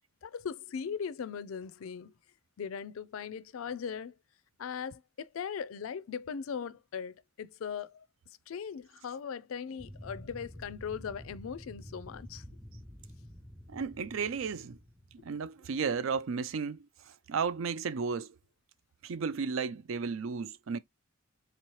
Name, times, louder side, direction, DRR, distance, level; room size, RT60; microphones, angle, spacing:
voice 1, 0.2-2.1 2.6-4.1 4.6-8.0 8.5-12.4, left 7 dB, 70° left, 0.4 m, -39 dB
sound 1, 9.8-15.6, equal, 5° right, 0.4 m, -49 dB
voice 2, 13.7-14.8 15.2-16.9 17.3-18.3 19.0-20.8, right 5 dB, 65° right, 0.4 m, -33 dB
4.0 x 2.9 x 3.1 m
head